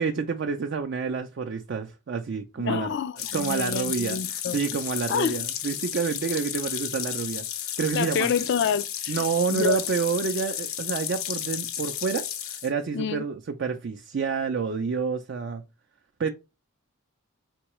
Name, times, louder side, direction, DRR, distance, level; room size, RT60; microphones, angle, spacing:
voice 1, 0.0-3.0 3.3-8.3 9.1-15.6 16.2-16.3, right 5 dB, 55° right, 0.4 m, -28 dB
voice 2, 2.6-4.6 5.1-5.4 7.9-9.2 9.5-9.8 12.9-13.3, left 6 dB, 55° left, 0.3 m, -28 dB
sound 1, 3.2-12.7, left 10 dB, 80° left, 0.7 m, -33 dB
4.4 x 3.8 x 3.0 m
head